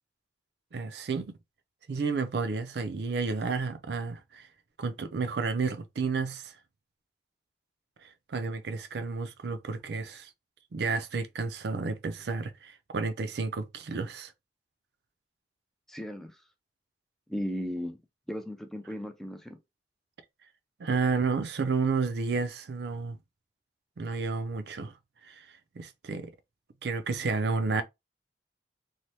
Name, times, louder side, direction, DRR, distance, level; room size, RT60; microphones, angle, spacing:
voice 1, 0.7-1.4 1.9-4.5 4.8-6.6 8.0-10.3 10.7-14.3 20.8-23.2 24.0-25.0 25.2-26.3 26.8-27.8, right 4 dB, 70° right, 0.4 m, -31 dB
voice 2, 15.9-16.4 17.3-18.0 18.3-19.6, equal, ahead, 0.4 m, -36 dB
3.2 x 2.1 x 2.8 m
head